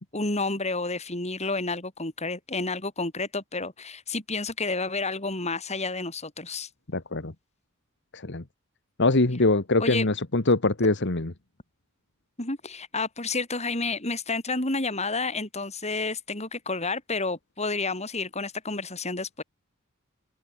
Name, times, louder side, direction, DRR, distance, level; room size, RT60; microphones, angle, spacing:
voice 1, 0.1-6.7 9.8-10.1 12.4-19.4, left 3 dB, 30° left, 7.2 m, -30 dB
voice 2, 6.9-7.3 8.1-8.4 9.0-11.3, left 2 dB, 55° left, 1.7 m, -23 dB
head